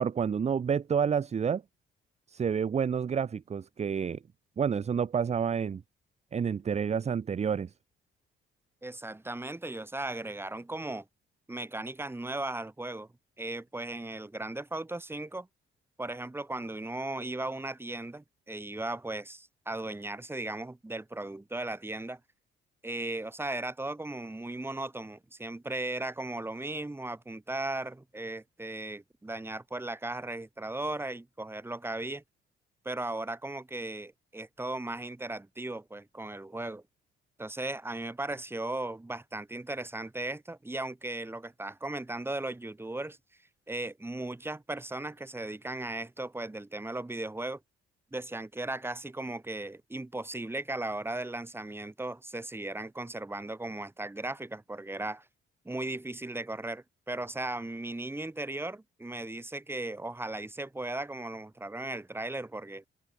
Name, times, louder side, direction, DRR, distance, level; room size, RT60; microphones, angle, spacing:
voice 1, 0.0-1.6 2.3-4.2 4.6-5.8 6.3-7.7, right 7 dB, 35° right, 0.7 m, -29 dB
voice 2, 8.8-11.1 11.5-13.1 13.4-15.5 16.0-22.2 22.8-32.2 32.8-36.8 37.4-43.2 43.7-47.6 48.1-55.3 55.7-62.8, right 2 dB, 10° right, 2.0 m, -37 dB
cardioid pair, 90°, 20 cm